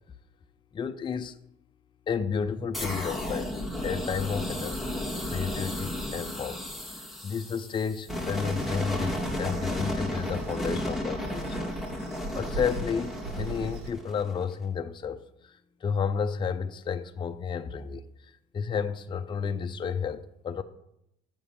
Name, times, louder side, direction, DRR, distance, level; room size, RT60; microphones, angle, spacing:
voice 1, 0.7-1.3 2.1-3.5 3.8-4.9 5.3-6.6 7.2-11.7 12.3-15.2 15.8-18.0 18.5-20.6, left 6 dB, 30° left, 0.5 m, -31 dB
sound 1, 2.7-14.5, left 1 dB, ahead, 1.4 m, -33 dB
sound 2, 8.3-13.9, right 3 dB, 80° right, 0.8 m, -41 dB
7.2 x 5.3 x 6.7 m
cardioid pair, 110°, 17 cm